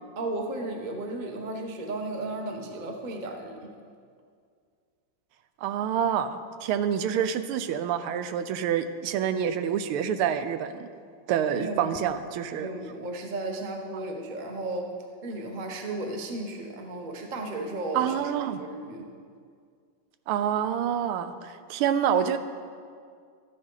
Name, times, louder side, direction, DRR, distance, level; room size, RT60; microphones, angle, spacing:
voice 1, 0.2-3.7 11.4-12.0 12.6-14.9 15.2-18.1 18.6-19.1, right 2 dB, 35° right, 2 dB, 0.7 m, -34 dB
voice 2, 5.6-10.9 11.3-12.7 17.9-18.6 20.3-22.4, right 9 dB, 90° right, 10 dB, 1.5 m, -27 dB
13.0 x 10.0 x 3.9 m, 2.2 s
omnidirectional pair, 2.3 m